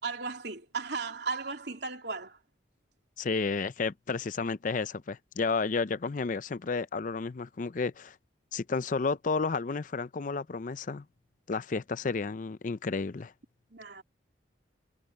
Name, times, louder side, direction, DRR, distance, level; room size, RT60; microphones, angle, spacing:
voice 1, 0.0-2.4 13.7-14.0, right 4 dB, 65° right, 3.4 m, -36 dB
voice 2, 3.2-8.2 8.5-11.0 11.5-13.3, left 4 dB, 45° left, 0.5 m, -31 dB
head